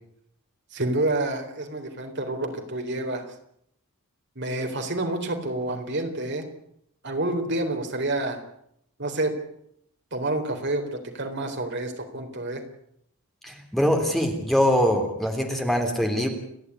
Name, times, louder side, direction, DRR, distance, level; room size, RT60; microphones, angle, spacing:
voice 1, 0.7-3.3 4.4-6.5 7.0-8.4 9.0-9.3 10.1-12.6, right 2 dB, 55° right, 4 dB, 3.9 m, -28 dB
voice 2, 13.4-16.3, equal, ahead, 3 dB, 3.1 m, -23 dB
29.5 x 11.0 x 9.8 m, 0.71 s
head